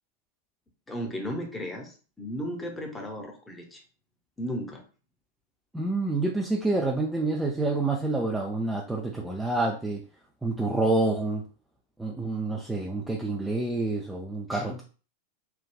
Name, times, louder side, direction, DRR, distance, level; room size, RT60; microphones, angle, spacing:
voice 1, 0.9-3.8 4.4-4.8 14.5-14.8, equal, 10° left, 2 dB, 0.8 m, -35 dB
voice 2, 5.7-10.0 10.4-11.4 12.0-14.9, right 2 dB, 5° right, -1 dB, 0.4 m, -28 dB
3.3 x 2.3 x 2.2 m, 0.38 s
figure-of-eight pair, 90°, 0 cm